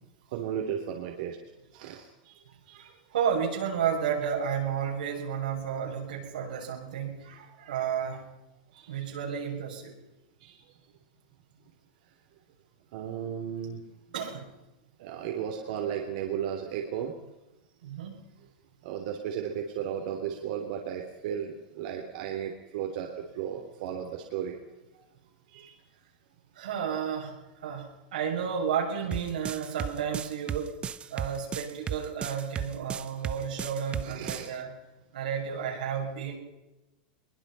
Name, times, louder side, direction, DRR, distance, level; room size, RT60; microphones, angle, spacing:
voice 1, 0.2-1.4 1.7-2.9 7.6-7.7 8.7-9.2 10.4-10.8 12.9-13.8 15.0-17.2 18.8-24.6 25.5-25.8 32.6-33.1 34.0-34.5, right 8 dB, 65° right, 2 dB, 3.3 m, -35 dB
voice 2, 2.7-8.3 8.9-9.9 14.1-14.5 17.8-18.2 26.5-30.7 31.1-34.7 35.1-36.4, right 7 dB, 90° right, -1 dB, 6.5 m, -32 dB
sound 1, 29.1-34.5, right 8 dB, 25° right, 1.0 m, -35 dB
22.5 x 21.0 x 5.7 m, 1.0 s
supercardioid pair, 130°, 4 cm